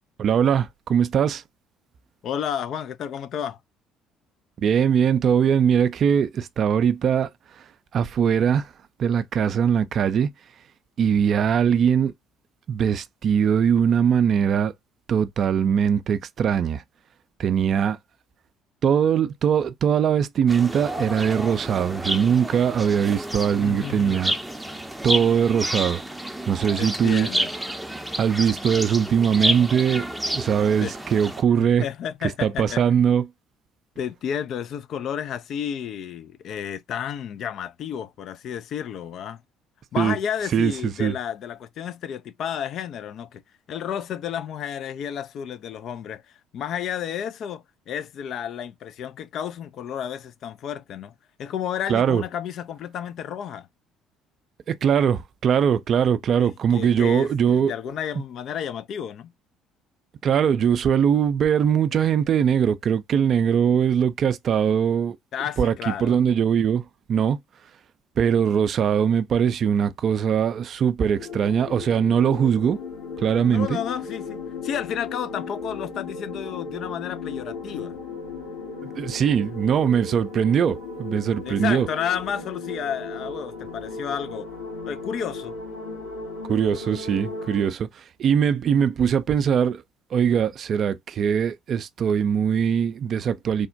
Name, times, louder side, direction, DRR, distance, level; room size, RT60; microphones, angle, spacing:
voice 1, 0.2-1.4 4.6-7.3 7.9-8.7 9.0-10.3 11.0-12.1 12.7-14.7 15.1-16.8 17.4-18.0 18.8-24.3 25.0-26.0 26.5-27.3 28.2-30.1 30.3-31.9 32.4-33.2 40.0-40.2 40.5-40.7 41.0-41.1 51.9-52.2 54.7-57.7 60.2-65.2 65.6-66.8 67.1-67.4 68.2-72.8 73.2-73.8 79.0-81.9 86.5-89.8 90.1-93.7, right 8 dB, 50° right, 0.4 m, -21 dB
voice 2, 2.2-3.6 23.6-24.2 26.8-27.5 30.8-31.0 31.6-32.8 34.0-39.4 39.9-43.4 43.7-51.1 51.4-53.7 56.4-59.3 65.3-66.2 73.5-78.0 81.5-84.5 84.8-85.5, left 9 dB, 55° left, 0.4 m, -32 dB
sound 1, 20.5-31.4, equal, 5° right, 0.6 m, -30 dB
sound 2, 71.1-87.7, left 4 dB, 70° left, 1.5 m, -36 dB
3.4 x 2.1 x 2.4 m
hypercardioid pair, 55°, 0 cm